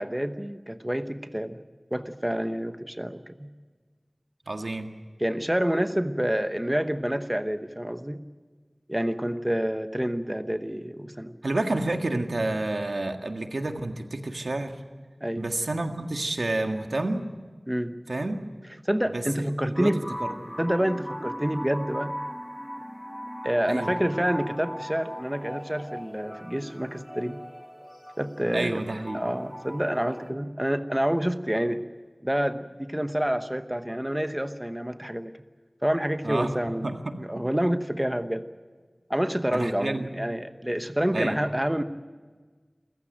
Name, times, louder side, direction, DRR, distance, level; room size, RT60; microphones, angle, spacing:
voice 1, 0.0-1.6 1.9-3.5 5.2-8.2 8.9-11.4 15.2-15.5 17.7-17.9 18.8-20.0 20.6-22.1 23.4-27.4 28.2-28.8 29.1-31.8 32.2-35.3 35.8-36.9 37.2-38.4 39.1-41.8, equal, 15° right, 9 dB, 1.0 m, -28 dB
voice 2, 4.5-4.9 11.4-14.8 15.4-17.3 18.1-18.5 19.0-20.3 23.7-23.9 28.5-29.2 36.2-36.5 36.8-37.2 39.5-40.1 41.1-41.4, right 2 dB, 85° right, 5 dB, 1.7 m, -29 dB
sound 1, 19.7-30.3, equal, ahead, 1.5 m, -39 dB
28.0 x 15.0 x 9.0 m, 1.4 s
wide cardioid pair, 45°, 0 cm